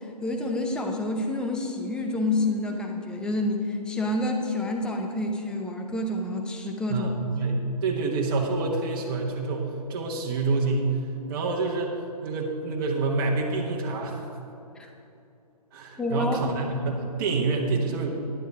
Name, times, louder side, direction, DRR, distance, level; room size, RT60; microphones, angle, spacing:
voice 1, 0.2-7.1 14.8-14.9 16.0-16.4, left 2 dB, 5° left, 3 dB, 0.6 m, -28 dB
voice 2, 6.9-11.0 11.3-14.3 15.7-18.1, right 3 dB, 35° right, -1 dB, 1.5 m, -27 dB
14.0 x 10.5 x 3.7 m, 2.7 s
hypercardioid pair, 145°, 21 cm